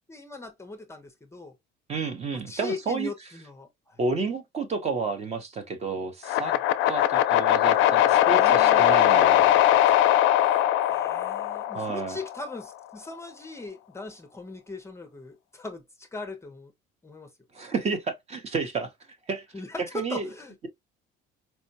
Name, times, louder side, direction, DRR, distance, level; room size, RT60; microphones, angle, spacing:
voice 1, 0.1-1.5 2.5-4.3 6.4-6.6 8.3-8.8 10.4-10.6 10.9-16.7 17.0-17.3 19.5-20.7, left 3 dB, 15° left, 0.5 m, -39 dB
voice 2, 1.9-3.1 4.0-6.5 6.9-9.5 11.7-12.2 17.5-18.9 19.3-19.5 19.9-20.3, right 4 dB, 30° right, 0.7 m, -30 dB
sound 1, 6.2-12.4, left 12 dB, 70° left, 0.4 m, -21 dB
4.4 x 2.1 x 2.6 m
cardioid pair, 145°, 21 cm